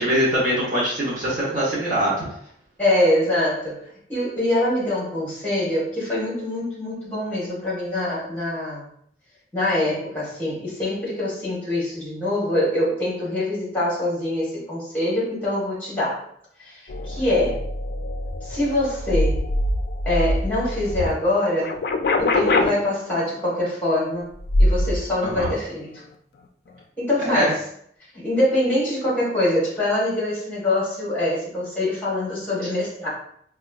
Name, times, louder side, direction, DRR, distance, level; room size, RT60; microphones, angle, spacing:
voice 1, 0.0-2.1 25.2-25.5 27.2-27.5 32.6-32.7, equal, 45° right, -7 dB, 0.8 m, -22 dB
voice 2, 2.8-3.8 4.1-8.8 9.5-16.2 16.6-17.6 18.4-19.5 20.0-21.7 22.2-24.3 24.6-26.0 27.0-27.6 28.1-33.1, left 1 dB, 10° left, -6 dB, 1.2 m, -24 dB
sound 1, 16.9-21.1 21.5-22.7 24.4-25.0 25.3-25.5, left 1 dB, 55° left, 0.3 m, -23 dB
4.1 x 2.2 x 2.3 m, 0.68 s
head